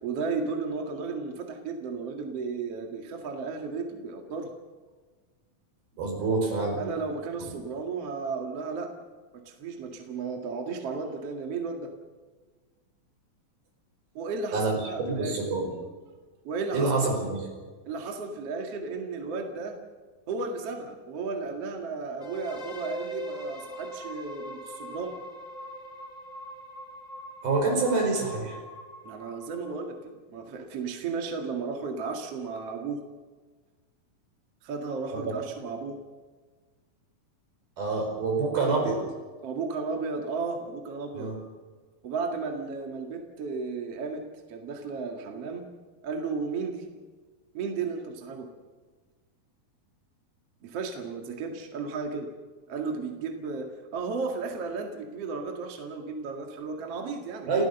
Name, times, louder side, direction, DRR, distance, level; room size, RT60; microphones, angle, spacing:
voice 1, 0.0-4.5 6.8-8.9 9.3-11.9 14.1-15.5 16.4-16.9 17.8-19.8 20.3-25.2 29.0-33.0 34.6-36.0 39.4-41.3 42.0-45.7 46.0-46.9 47.5-48.5 50.6-52.3 52.7-53.7 53.9-57.6, right 4 dB, 45° right, 3 dB, 2.7 m, -34 dB
voice 2, 6.0-6.8 7.4-7.5 14.5-14.7 15.0-15.7 16.7-17.5 27.4-28.6 35.1-35.3 37.8-39.0 41.1-41.4 57.5-57.6, right 3 dB, 75° right, 1 dB, 6.8 m, -26 dB
sound 1, 22.2-30.0, equal, 10° left, 2.4 m, -41 dB
29.0 x 15.5 x 6.8 m, 1.4 s
omnidirectional pair, 4.3 m